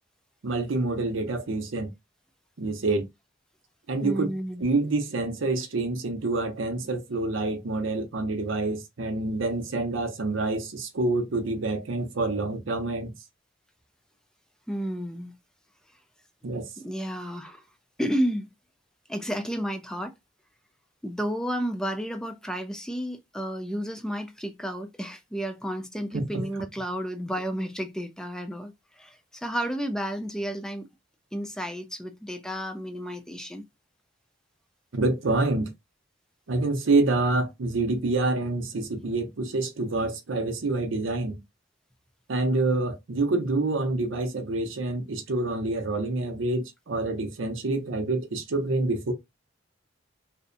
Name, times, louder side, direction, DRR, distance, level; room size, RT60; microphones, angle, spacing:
voice 1, 0.4-1.9 2.6-3.1 3.9-4.3 4.6-13.1 16.4-16.7 26.1-26.4 34.9-35.7 36.5-41.4 42.3-49.1, right 2 dB, 85° right, 0.6 m, -27 dB
voice 2, 4.0-4.6 14.7-15.3 16.8-17.6 18.0-18.5 19.1-20.1 21.0-30.9 31.3-33.6, equal, 5° left, 0.3 m, -32 dB
2.6 x 2.1 x 2.5 m
head